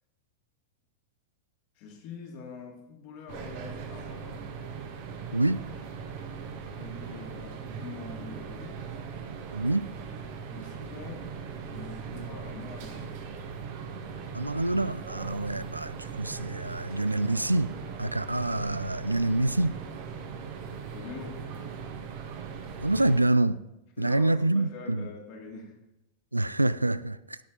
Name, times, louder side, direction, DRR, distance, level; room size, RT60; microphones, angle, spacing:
voice 1, 1.8-4.4 6.6-8.8 10.5-11.3 11.7-13.1 20.9-21.5 24.0-25.7, left 4 dB, 45° left, 2.5 m, -44 dB
sound 1, 3.3-23.2, right 6 dB, 50° right, 1.5 m, -39 dB
voice 2, 5.3-5.7 9.5-9.9 14.3-17.7 18.0-19.8 22.8-23.6 24.0-25.1 26.3-27.4, right 2 dB, 85° right, 0.3 m, -26 dB
17.0 x 6.5 x 3.9 m
figure-of-eight pair, 90°, 0 cm